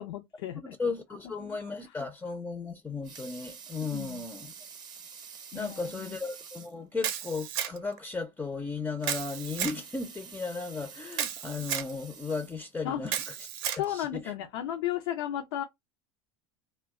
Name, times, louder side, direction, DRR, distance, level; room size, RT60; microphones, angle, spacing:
voice 1, 0.0-0.8 1.4-2.0 3.9-4.2 5.5-6.2 12.8-13.0 13.7-15.6, left 12 dB, 85° left, 0.5 m, -35 dB
voice 2, 0.5-4.5 5.5-13.3 13.9-14.2, left 4 dB, 10° left, 0.4 m, -35 dB
Water tap faucet / Sink (filling or washing) / Liquid, 2.8-6.8 7.3-7.4 7.7-7.8 8.9-13.0 13.6-13.7, right 6 dB, 35° right, 0.7 m, -48 dB
Camera, 7.0-8.0 9.0-9.8 11.1-11.9 13.1-13.8, right 10 dB, 75° right, 0.5 m, -33 dB
2.2 x 2.2 x 3.5 m
supercardioid pair, 105°, 12 cm